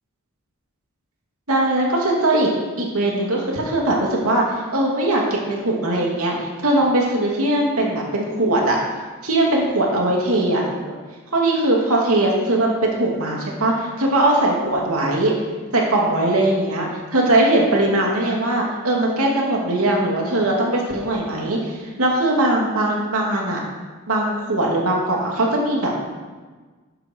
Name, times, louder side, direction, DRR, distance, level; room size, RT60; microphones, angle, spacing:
voice 1, 1.5-2.5 2.8-8.8 9.2-11.0 11.3-15.3 15.7-23.6 24.1-26.1, right 1 dB, 80° right, -2 dB, 2.7 m, -20 dB
12.0 x 11.0 x 4.7 m, 1.4 s
head